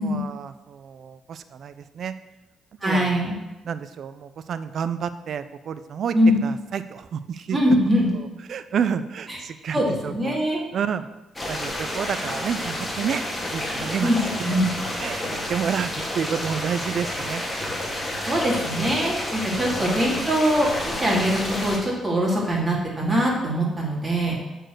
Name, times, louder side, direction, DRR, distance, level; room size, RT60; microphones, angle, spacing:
voice 1, 0.0-2.1 2.8-3.3 3.6-6.2 6.4-7.6 8.1-10.4 10.7-11.1 11.5-13.2 13.5-14.1 15.0-17.4 19.5-19.9, right 7 dB, 60° right, 12 dB, 0.5 m, -30 dB
voice 2, 2.8-3.4 6.1-6.4 7.5-8.1 9.3-9.4 9.7-10.6 14.0-14.2 14.4-14.7 18.3-24.4, equal, 20° right, -3 dB, 2.7 m, -22 dB
sound 1, 11.4-21.8, left 1 dB, 15° left, 2.1 m, -30 dB
8.2 x 4.6 x 6.2 m, 1.1 s
cardioid pair, 90°, 0 cm